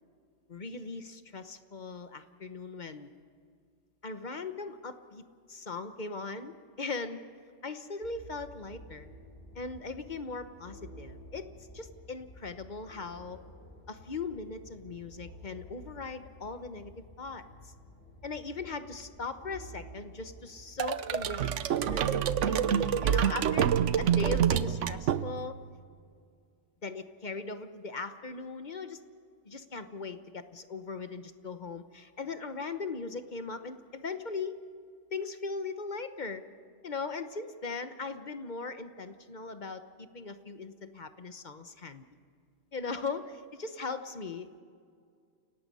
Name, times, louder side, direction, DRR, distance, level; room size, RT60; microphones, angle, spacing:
voice 1, 0.5-3.1 4.0-5.2 5.5-7.2 7.6-9.1 9.5-11.5 11.7-13.4 13.9-17.7 18.2-23.7 24.0-25.6 26.8-29.0 29.4-34.6 35.1-36.4 36.8-42.0 42.7-44.5, left 4 dB, 40° left, 9 dB, 1.1 m, -39 dB
sound 1, 8.0-22.1, left 1 dB, 80° left, 8.4 m, -52 dB
sound 2, 20.8-25.6, right 9 dB, 80° right, 1.1 m, -27 dB
30.0 x 18.0 x 5.5 m, 2.2 s
omnidirectional pair, 1.3 m